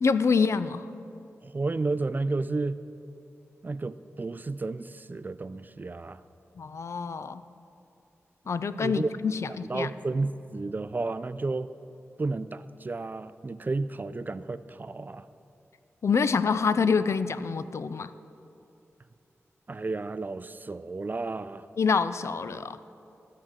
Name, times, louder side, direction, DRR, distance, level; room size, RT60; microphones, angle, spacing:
voice 1, 0.0-0.9 6.6-7.4 8.5-9.9 16.0-18.1 21.8-22.8, left 5 dB, 65° left, 13 dB, 0.4 m, -26 dB
voice 2, 1.4-2.8 3.6-6.2 8.7-9.1 9.5-11.7 12.2-15.3 19.7-21.7, right 3 dB, 35° right, 14 dB, 0.3 m, -32 dB
16.0 x 6.6 x 3.7 m, 2.7 s
cardioid pair, 50°, 5 cm